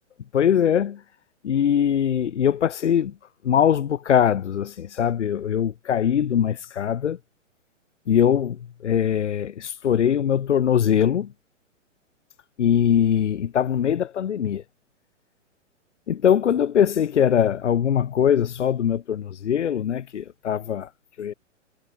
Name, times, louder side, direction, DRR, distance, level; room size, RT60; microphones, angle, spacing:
voice 1, 0.3-1.0 1.4-3.1 3.4-7.2 8.1-11.3 12.6-14.6 16.1-20.9 21.2-21.3, left 9 dB, 70° left, 1.3 m, -22 dB
figure-of-eight pair, 120°, 37 cm